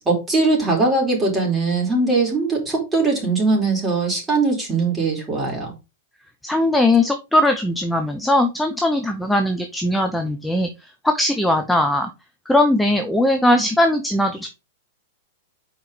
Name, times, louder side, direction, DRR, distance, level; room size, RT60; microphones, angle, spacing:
voice 1, 0.1-5.7, right 3 dB, 15° right, -2 dB, 4.3 m, -20 dB
voice 2, 6.4-12.1 12.5-14.5, left 1 dB, 5° left, 5 dB, 0.9 m, -19 dB
5.4 x 4.9 x 5.1 m, 0.27 s
hypercardioid pair, 105°, 0 cm